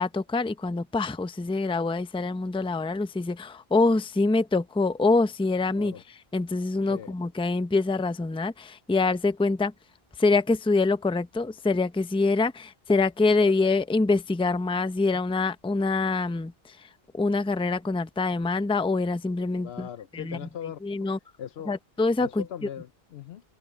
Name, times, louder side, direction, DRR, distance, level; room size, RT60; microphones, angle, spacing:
voice 1, 0.0-9.7 10.2-16.9 17.1-19.9 20.1-20.4 20.8-21.2 21.7-22.4, left 3 dB, 5° left, 0.5 m, -25 dB
voice 2, 19.6-20.8 21.4-21.7 22.2-23.4, left 9 dB, 80° left, 0.9 m, -39 dB
open air
omnidirectional pair, 1.1 m